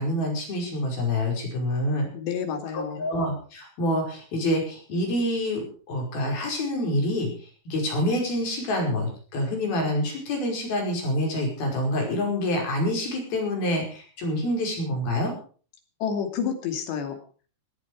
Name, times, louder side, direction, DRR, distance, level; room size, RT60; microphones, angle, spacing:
voice 1, 0.0-2.1 2.7-7.3 7.7-15.3, left 1 dB, 60° left, 1 dB, 7.1 m, -27 dB
voice 2, 2.1-3.1 16.0-17.2, left 7 dB, 80° left, 6 dB, 4.8 m, -29 dB
18.0 x 14.0 x 4.8 m, 0.41 s
omnidirectional pair, 4.9 m